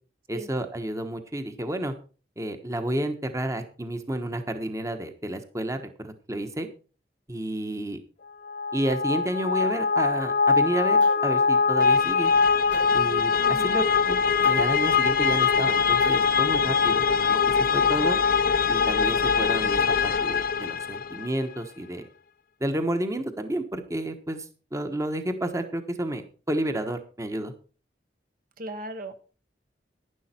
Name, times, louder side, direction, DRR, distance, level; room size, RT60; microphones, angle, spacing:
voice 1, 0.3-1.9 2.4-6.7 7.3-8.0 8.7-12.3 12.9-14.2 14.4-17.4 17.7-18.2 18.7-22.1 22.6-27.5, right 1 dB, 20° right, 8 dB, 1.2 m, -30 dB
sound 1, 8.5-21.3, left 5 dB, 55° left, 0.7 m, -22 dB
sound 2, 11.0-11.3 12.7-12.9 14.4-14.6 16.0-16.3, right 1 dB, 90° right, 7.3 m, -41 dB
voice 2, 13.4-13.7 28.6-29.1, right 1 dB, 55° right, 9 dB, 1.2 m, -37 dB
11.0 x 11.0 x 4.4 m, 0.36 s
head